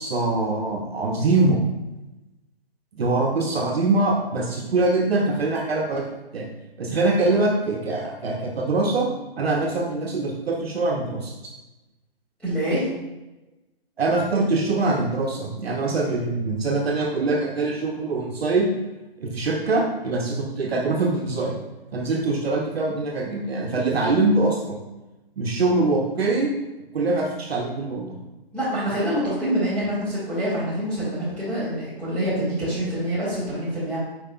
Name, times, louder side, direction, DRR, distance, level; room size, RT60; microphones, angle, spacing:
voice 1, 0.0-1.6 2.9-6.0 6.3-6.5 6.8-9.1 9.4-11.5 14.0-18.7 19.2-21.5 21.9-24.8 25.4-26.5 26.9-28.2, right 3 dB, 75° right, -1 dB, 0.8 m, -23 dB
voice 2, 12.4-12.9 28.5-34.0, equal, 5° left, -13 dB, 1.5 m, -26 dB
5.2 x 4.6 x 2.2 m, 1.0 s
hypercardioid pair, 150°, 30 cm